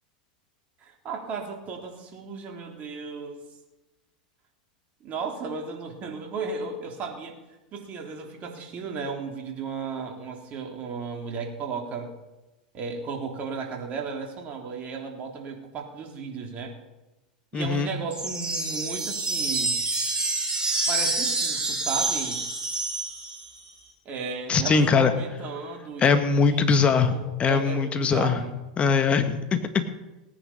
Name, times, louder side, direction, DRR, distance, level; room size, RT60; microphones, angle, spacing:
voice 1, 0.8-3.4 5.0-7.4 7.7-12.1 12.7-16.8 17.5-19.8 20.9-22.4 24.1-28.5, right 5 dB, 35° right, 1 dB, 3.5 m, -35 dB
voice 2, 17.5-17.9 24.5-25.1 26.0-27.1 27.4-28.4 28.8-30.0, left 5 dB, 25° left, 8 dB, 1.7 m, -21 dB
sound 1, 18.1-23.6, right 3 dB, 15° right, 4.2 m, -27 dB
18.5 x 10.0 x 5.7 m, 1.0 s
hypercardioid pair, 100°, 4 cm